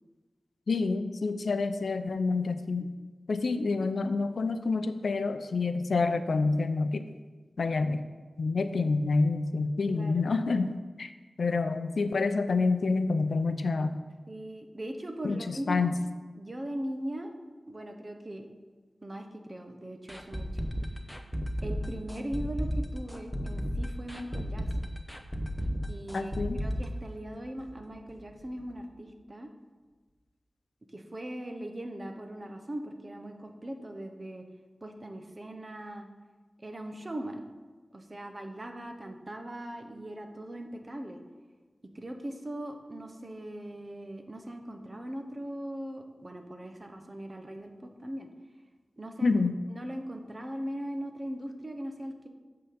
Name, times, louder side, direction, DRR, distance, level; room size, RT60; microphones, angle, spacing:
voice 1, 0.7-2.9 3.3-7.0 7.6-8.1 8.4-10.7 11.0-11.1 11.4-14.0 15.2-15.9 26.1-26.6 49.2-49.5, left 3 dB, 85° left, 10 dB, 0.4 m, -28 dB
voice 2, 9.9-10.2 14.3-15.9 16.3-17.4 17.7-18.5 19.0-20.5 21.6-24.8 25.9-26.3 26.6-29.5 30.9-34.5 34.8-36.1 36.6-37.4 37.9-41.2 41.8-48.3 49.0-49.3 49.7-52.3, right 1 dB, 35° right, 5 dB, 0.9 m, -39 dB
sound 1, 20.1-27.8 28.1-28.2 28.6-28.7, equal, 5° left, 0.7 m, -33 dB
8.0 x 3.8 x 6.7 m, 1.3 s
wide cardioid pair, 75°, 0 cm